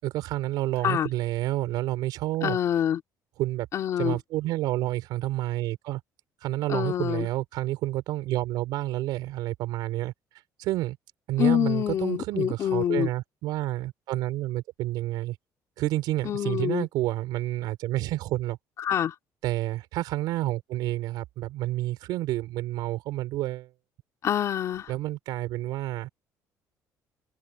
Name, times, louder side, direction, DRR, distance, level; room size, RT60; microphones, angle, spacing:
voice 1, 0.0-2.6 3.4-3.7 4.0-6.0 6.4-10.1 10.6-11.0 11.3-15.4 15.8-18.6 19.4-23.7 24.9-26.1, right 16 dB, 80° right, 5.5 m, -29 dB
voice 2, 2.4-3.0 3.7-4.2 6.7-7.3 11.4-13.1 16.2-16.9 18.8-19.1 24.2-24.9, left 10 dB, 50° left, 3.3 m, -26 dB
cardioid pair, 145°, 7 cm